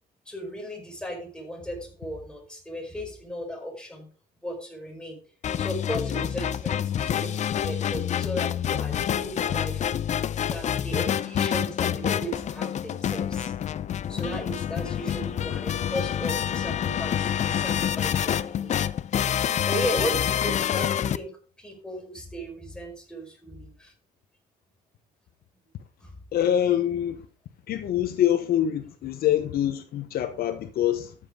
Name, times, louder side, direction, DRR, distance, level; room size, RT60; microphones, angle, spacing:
voice 1, 0.2-4.1 4.4-5.2 5.6-9.9 10.5-13.5 14.1-18.7 19.6-23.9 26.0-26.2, equal, 5° left, 5.1 m, -36 dB
sound 1, 5.4-21.2, left 9 dB, 45° left, 0.6 m, -27 dB
voice 2, 26.3-27.3 27.7-31.1, left 11 dB, 65° left, 1.1 m, -25 dB
13.5 x 7.6 x 3.8 m
cardioid pair, 110°, 17 cm